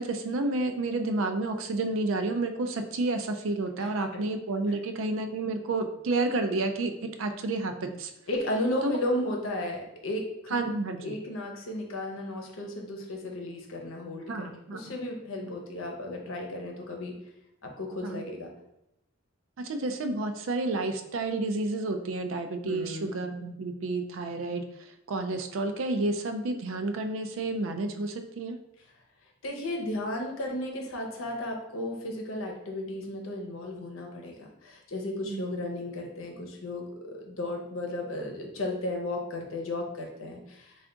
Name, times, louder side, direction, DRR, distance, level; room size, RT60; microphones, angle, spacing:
voice 1, 0.0-8.1 8.8-9.0 10.5-11.2 14.3-14.9 15.4-15.5 18.0-18.2 19.6-28.6 35.3-35.5, right 2 dB, 75° right, 6 dB, 0.4 m, -30 dB
voice 2, 3.8-4.3 8.3-10.5 11.0-14.3 14.7-17.1 17.6-18.5 22.6-23.1 29.4-40.7, left 1 dB, 85° left, 1 dB, 0.8 m, -34 dB
3.4 x 2.4 x 3.8 m, 0.86 s
head